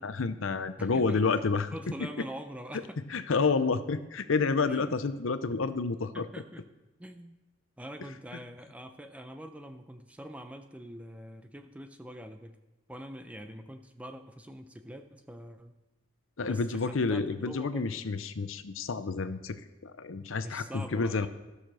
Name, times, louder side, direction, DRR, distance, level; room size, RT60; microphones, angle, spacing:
voice 1, 0.0-2.1 3.1-6.3 16.4-21.3, left 4 dB, 70° left, 12 dB, 0.6 m, -29 dB
voice 2, 0.8-1.2 1.7-3.0 4.6-5.0 6.1-6.6 7.0-7.4 7.8-12.6 12.9-15.7 16.5-18.0 20.4-21.3, equal, 5° right, 7 dB, 0.6 m, -44 dB
13.5 x 6.6 x 6.2 m, 1.1 s
head